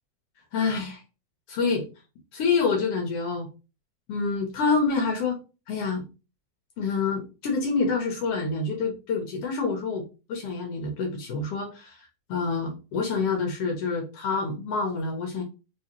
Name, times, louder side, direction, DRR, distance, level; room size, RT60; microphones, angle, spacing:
voice 1, 0.5-1.0 1.5-1.8 2.3-3.5 4.1-5.4 5.7-6.1 6.8-10.0 10.3-15.4, left 4 dB, 75° left, 3 dB, 1.4 m, -27 dB
4.7 x 3.2 x 2.8 m, 0.31 s
omnidirectional pair, 3.6 m